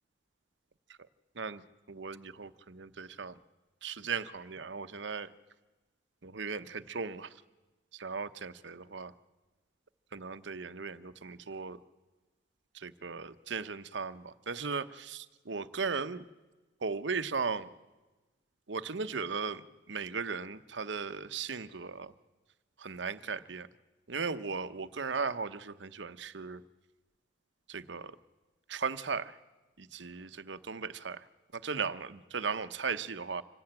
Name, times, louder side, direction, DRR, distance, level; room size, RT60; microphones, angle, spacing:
voice 1, 1.9-3.3 3.8-5.3 6.2-7.3 7.9-9.1 10.1-11.8 12.7-16.2 16.8-17.7 18.7-22.1 22.8-23.7 24.1-26.6 27.7-28.2 28.7-29.4 29.8-31.2 31.5-33.4, right 5 dB, 70° right, 13 dB, 0.9 m, -37 dB
25.5 x 17.5 x 8.9 m, 1.2 s
head